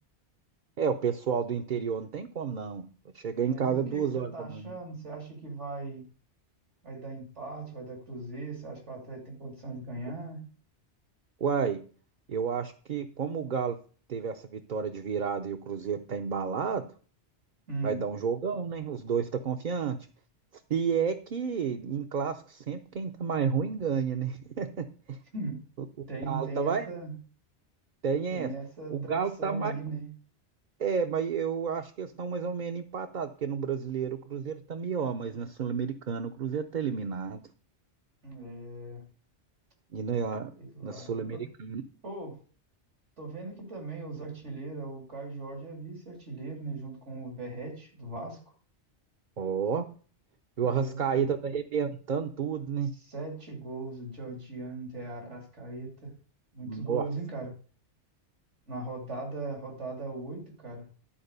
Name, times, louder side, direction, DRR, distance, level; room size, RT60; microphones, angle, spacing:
voice 1, 0.8-2.9 3.1-4.8 11.4-11.8 12.3-13.8 14.1-16.9 17.8-20.0 20.7-25.2 26.0-26.8 28.0-28.5 28.9-29.7 30.8-37.4 39.9-40.5 40.8-41.8 49.4-49.9 50.6-52.9 56.6-57.0, right 6 dB, 50° right, 5 dB, 0.7 m, -31 dB
voice 2, 3.5-6.0 6.8-10.5 17.7-18.0 25.3-25.6 26.1-27.2 28.3-30.1 38.2-39.0 40.6-41.4 42.0-42.4 43.2-48.4 50.6-51.3 52.9-56.1 56.5-57.5 58.7-60.9, right 3 dB, 85° right, 2 dB, 3.3 m, -39 dB
11.5 x 4.7 x 6.6 m, 0.40 s
omnidirectional pair, 1.2 m